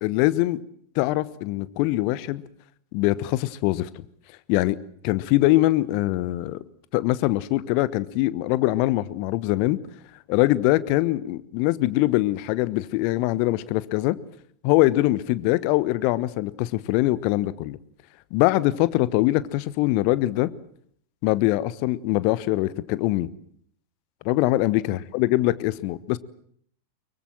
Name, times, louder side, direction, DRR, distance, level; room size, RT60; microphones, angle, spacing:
voice 1, 0.0-0.6 0.9-2.4 2.9-3.9 4.5-4.8 5.0-6.6 6.9-9.8 10.3-14.2 14.6-17.8 18.3-20.5 21.2-23.3 24.2-26.2, left 17 dB, 45° left, 18 dB, 1.1 m, -23 dB
24.5 x 23.0 x 7.6 m, 0.63 s
figure-of-eight pair, 90°, 0 cm